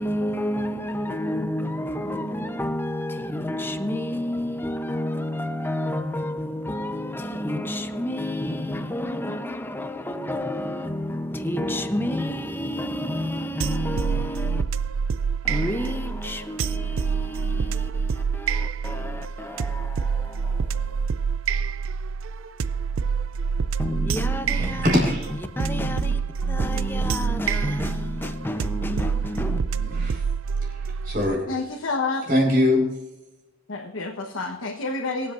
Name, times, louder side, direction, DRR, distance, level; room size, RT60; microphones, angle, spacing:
voice 1, 0.0-14.6 15.4-21.1 23.8-25.1 25.6-29.6, left 1 dB, 10° left, 0.7 m, -30 dB
sound 1, 13.6-31.4, right 5 dB, 80° right, 0.4 m, -27 dB
voice 2, 24.8-25.3 29.8-30.2 30.6-30.8 31.0-31.5 32.3-32.9, left 1 dB, 45° right, 4.9 m, -22 dB
voice 3, 31.5-32.3 33.7-35.3, left 3 dB, 90° left, 1.2 m, -29 dB
23.5 x 8.0 x 2.6 m
head